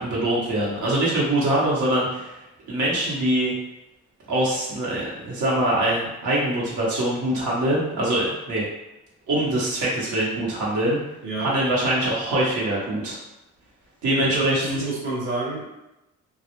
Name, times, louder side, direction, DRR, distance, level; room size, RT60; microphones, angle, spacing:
voice 1, 0.0-2.4 2.7-3.5 4.3-8.6 9.3-11.0 11.4-13.2 14.0-14.8, right 1 dB, 75° right, -5 dB, 0.9 m, -23 dB
voice 2, 11.2-11.5 14.2-14.5 14.7-15.6, right 3 dB, 40° right, -4 dB, 0.8 m, -28 dB
2.2 x 2.1 x 2.9 m, 0.93 s
cardioid pair, 90°, 30 cm